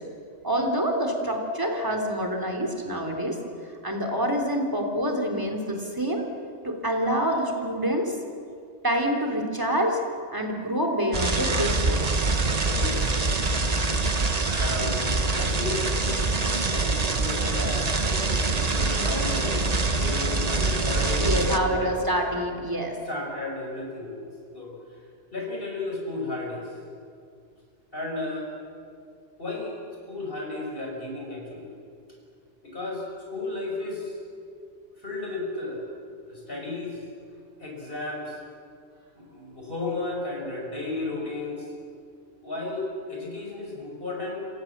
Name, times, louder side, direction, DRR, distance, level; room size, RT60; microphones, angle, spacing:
voice 1, 0.4-3.4 3.8-6.2 6.6-8.1 8.8-10.0 10.3-12.0 21.2-23.0, equal, 15° right, 2 dB, 3.5 m, -26 dB
sound 1, 11.1-21.6, right 3 dB, 35° right, 1.3 m, -25 dB
voice 2, 12.7-13.2 14.4-15.9 17.2-22.0 23.1-24.2 24.5-24.7 25.3-26.7 27.9-28.5 29.4-29.7 30.1-31.7 32.6-34.2 35.0-35.9 36.3-37.0 37.6-38.4 39.2-41.6 42.4-44.5, left 2 dB, 45° left, -2 dB, 6.6 m, -33 dB
28.0 x 25.0 x 7.5 m, 2.4 s
omnidirectional pair, 1.3 m